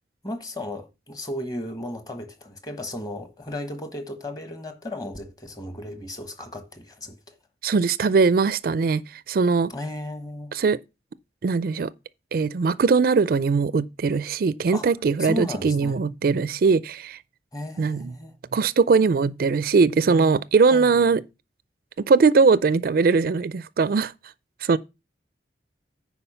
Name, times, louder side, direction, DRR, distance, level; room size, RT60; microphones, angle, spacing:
voice 1, 0.2-7.4 9.7-10.5 14.7-14.9 15.2-16.0 17.5-18.3 20.7-21.0, left 1 dB, 20° left, 1.3 m, -35 dB
voice 2, 7.6-9.7 10.5-10.8 11.4-11.9 12.3-17.2 17.8-18.1 18.5-21.2 22.1-24.1 24.6-24.8, right 4 dB, 55° right, 0.4 m, -20 dB
9.8 x 4.6 x 5.6 m
head